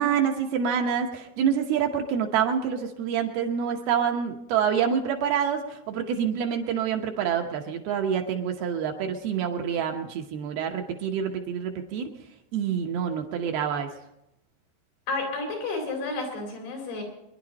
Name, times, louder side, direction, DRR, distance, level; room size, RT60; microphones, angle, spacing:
voice 1, 0.0-12.1 12.5-13.9, right 8 dB, 70° right, 3 dB, 2.6 m, -27 dB
voice 2, 15.1-17.0, left 3 dB, 90° left, 1 dB, 6.1 m, -31 dB
24.0 x 11.0 x 4.1 m, 0.84 s
omnidirectional pair, 5.1 m